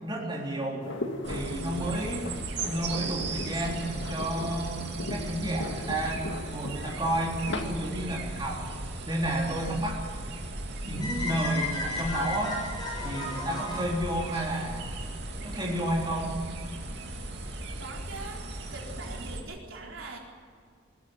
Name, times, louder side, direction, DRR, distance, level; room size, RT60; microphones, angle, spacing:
voice 1, 0.0-0.9 1.3-2.2 2.6-8.7 9.1-10.0 10.9-12.6 13.0-14.9 15.4-16.3, right 1 dB, 20° right, -3 dB, 3.7 m, -31 dB
sound 1, 0.8-7.6, left 2 dB, 60° left, 2.0 m, -38 dB
sound 2, 1.2-19.4, right 2 dB, 55° right, 2.8 m, -37 dB
sound 3, 11.0-15.1, left 2 dB, 20° left, 7.0 m, -35 dB
voice 2, 17.8-18.4 18.7-20.2, right 3 dB, 75° right, -1 dB, 4.3 m, -42 dB
21.5 x 15.0 x 9.4 m, 2.1 s
head